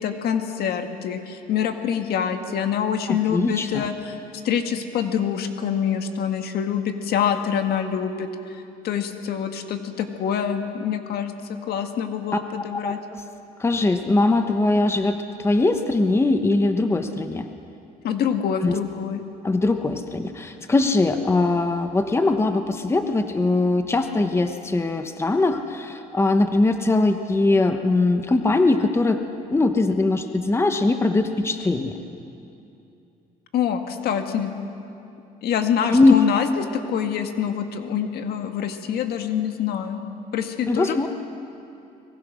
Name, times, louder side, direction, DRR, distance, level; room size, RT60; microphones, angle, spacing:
voice 1, 0.0-4.2 4.4-8.3 8.8-11.3 11.7-13.0 18.0-19.2 33.5-34.5 35.4-40.0 40.3-41.0, left 8 dB, 70° left, 6 dB, 1.8 m, -25 dB
voice 2, 3.1-3.9 12.8-13.2 13.6-17.4 18.6-18.7 19.4-29.2 29.5-32.0 35.9-36.2 40.7-41.1, left 2 dB, 15° left, 7 dB, 1.1 m, -21 dB
24.0 x 21.5 x 6.3 m, 2.7 s
cardioid pair, 110°, 17 cm